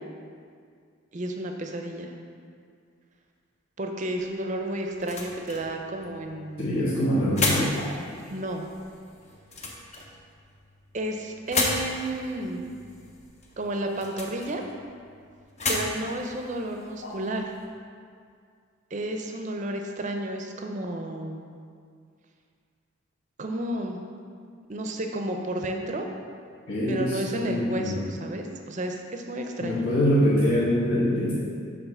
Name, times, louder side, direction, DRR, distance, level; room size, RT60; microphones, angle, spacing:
voice 1, 1.1-2.1 3.8-6.8 8.3-8.7 10.9-12.8 13.6-14.6 15.7-17.5 18.9-21.4 23.4-24.0 24.7-26.1 26.9-29.9, right 1 dB, 35° right, 3 dB, 0.5 m, -32 dB
sound 1, 4.2-17.7, left 2 dB, 30° left, 0.7 m, -35 dB
voice 2, 6.6-7.7 17.0-17.1 26.7-28.1 29.6-31.3, equal, 65° left, -10 dB, 1.4 m, -24 dB
7.0 x 3.7 x 5.6 m, 2.2 s
head